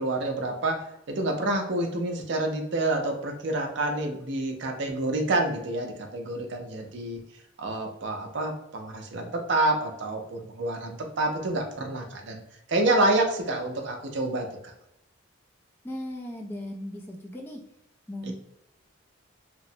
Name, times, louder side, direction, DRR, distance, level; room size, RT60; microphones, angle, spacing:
voice 1, 0.0-7.2 7.6-12.4 12.7-14.7 18.3-18.4, right 2 dB, 60° right, 2 dB, 0.5 m, -28 dB
voice 2, 15.8-17.6 18.1-18.3, left 1 dB, 10° left, -1 dB, 0.4 m, -37 dB
2.9 x 2.0 x 2.6 m, 0.83 s
head